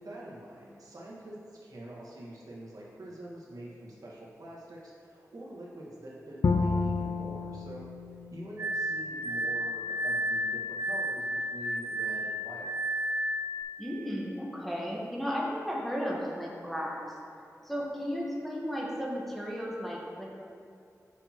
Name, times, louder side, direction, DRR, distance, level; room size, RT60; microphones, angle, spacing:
voice 1, 0.0-7.9 8.3-12.8 17.7-17.8, right 1 dB, 75° right, -6 dB, 1.5 m, -45 dB
Bowed string instrument, 6.4-9.6, left 4 dB, 70° left, 0.4 m, -31 dB
Glass, 8.6-13.6, equal, 40° right, 0.4 m, -32 dB
voice 2, 13.8-17.0 17.6-20.4, equal, ahead, -4 dB, 1.1 m, -34 dB
8.1 x 5.9 x 2.9 m, 2.5 s
wide cardioid pair, 80°, 6 cm